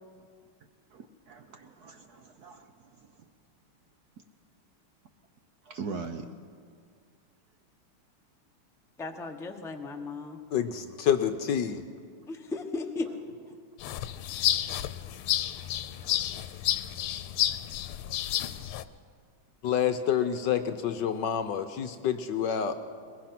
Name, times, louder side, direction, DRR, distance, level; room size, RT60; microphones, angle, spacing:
voice 1, 0.9-2.7 5.6-6.3 9.1-9.2 14.1-15.2 15.6-16.2 17.5-17.6, right 4 dB, 60° right, 7 dB, 1.1 m, -43 dB
voice 2, 9.0-10.4 12.3-13.1, left 3 dB, 5° left, 3 dB, 0.6 m, -35 dB
voice 3, 10.5-11.8 19.6-22.8, left 8 dB, 65° left, 9 dB, 1.2 m, -28 dB
sound 1, 13.8-18.8, left 12 dB, 80° left, 1.6 m, -30 dB
22.0 x 21.0 x 5.9 m, 2.1 s
omnidirectional pair, 2.4 m